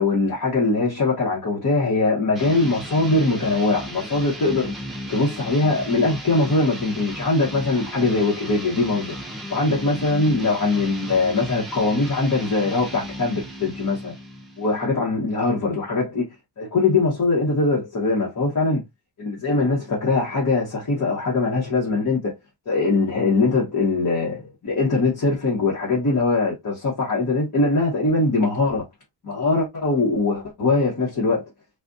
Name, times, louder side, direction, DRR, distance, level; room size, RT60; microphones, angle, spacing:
voice 1, 0.0-4.7 5.1-9.2 9.5-14.1 14.6-16.3 16.6-18.8 19.2-22.3 22.7-28.8 29.2-31.5, left 3 dB, 40° left, 1.1 m, -22 dB
sound 1, 2.3-14.9, equal, ahead, 0.8 m, -35 dB
3.6 x 2.4 x 2.6 m
wide cardioid pair, 180°, 45 cm